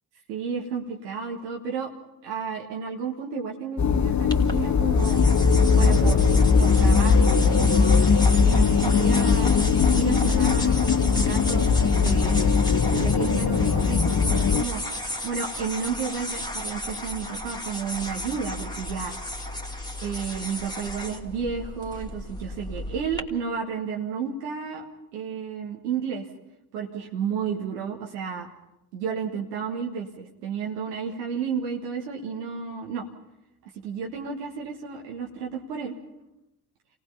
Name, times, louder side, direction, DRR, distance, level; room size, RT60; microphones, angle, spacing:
voice 1, 0.3-1.9 2.2-5.2 5.7-6.3 6.6-8.0 8.3-9.5 9.9-12.6 12.9-14.8 15.2-19.1 20.0-24.8 25.1-26.3 26.7-28.5 28.9-33.1 33.8-36.0, right 6 dB, 80° right, -1 dB, 1.7 m, -32 dB
sound 1, 3.8-14.6, left 5 dB, 35° left, 1.3 m, -20 dB
sound 2, 4.3-23.2, left 1 dB, 10° left, 2.6 m, -34 dB
28.0 x 18.5 x 5.7 m, 0.90 s
hypercardioid pair, 45°, 47 cm